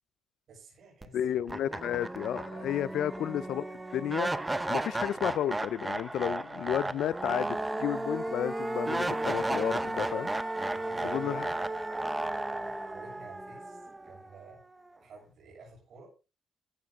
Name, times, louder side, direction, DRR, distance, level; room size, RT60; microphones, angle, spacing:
voice 1, 0.5-1.5 1.8-3.1 10.6-11.6 11.9-14.6 14.9-16.1, right 3 dB, 60° right, 7.0 m, -53 dB
sound 1, 1.0-1.1 1.5-14.5, right 2 dB, 10° right, 0.8 m, -34 dB
voice 2, 1.1-3.7 3.9-4.3 4.7-10.3 11.0-11.5, left 10 dB, 75° left, 0.5 m, -32 dB
14.0 x 9.1 x 3.7 m
cardioid pair, 115°, 0 cm